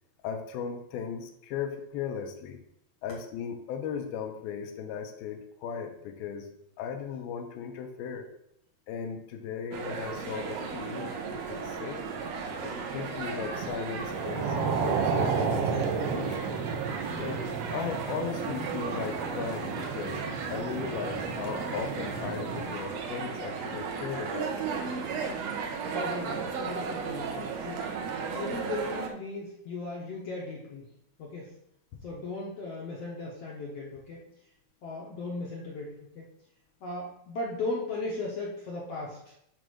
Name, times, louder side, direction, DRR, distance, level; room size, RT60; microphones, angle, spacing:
voice 1, 0.2-2.6 3.0-6.5 6.8-8.3 8.9-12.0 12.6-14.6 14.8-16.5 17.2-20.2 20.5-24.5, left 7 dB, 85° left, 5 dB, 2.9 m, -37 dB
sound 1, 9.7-29.1, right 5 dB, 70° right, 1.6 m, -35 dB
sound 2, 13.9-22.7, right 5 dB, 90° right, 3.0 m, -33 dB
voice 2, 25.9-27.9 28.3-30.9 31.2-31.5 32.0-34.2 34.8-36.3 36.8-39.3, left 2 dB, 65° left, -3 dB, 1.7 m, -37 dB
8.9 x 3.9 x 6.2 m, 0.75 s
omnidirectional pair, 4.2 m